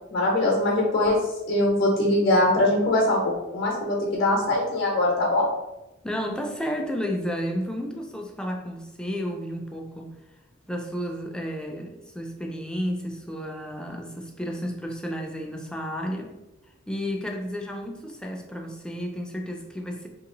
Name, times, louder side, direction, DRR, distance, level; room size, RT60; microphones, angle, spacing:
voice 1, 0.1-1.2 1.5-5.5, left 1 dB, 55° left, -3 dB, 0.8 m, -22 dB
voice 2, 6.0-10.1 10.7-16.4 16.9-20.1, equal, 5° left, 2 dB, 0.4 m, -32 dB
2.9 x 2.8 x 3.8 m, 1.0 s
head